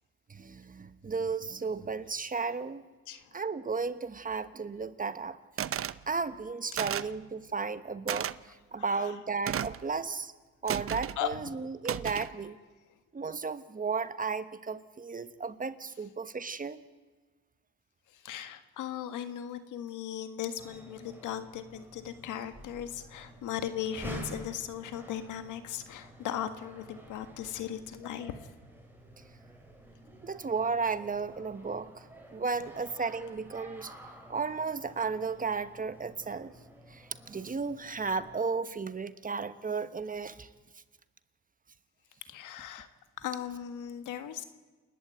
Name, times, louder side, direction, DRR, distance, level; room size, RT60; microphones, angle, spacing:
voice 1, 0.3-2.8 3.3-5.4 6.1-10.3 10.6-12.6 13.1-16.8 30.2-32.1 32.3-33.9 34.3-36.5 36.9-40.5, right 4 dB, 25° right, 12 dB, 1.1 m, -34 dB
voice 2, 3.1-3.4 8.8-9.1 11.2-11.4 18.1-28.4 42.3-42.9 43.2-44.4, left 10 dB, 85° left, 9 dB, 1.7 m, -38 dB
sound 1, 5.6-6.0 6.8-7.2 8.1-8.3 9.5-9.8 10.7-11.2 11.9-12.3, right 10 dB, 45° right, 0.7 m, -33 dB
sound 2, 20.6-38.4, right 1 dB, 5° right, 5.0 m, -50 dB
28.5 x 11.5 x 9.3 m, 1.3 s
cardioid pair, 90°, 30 cm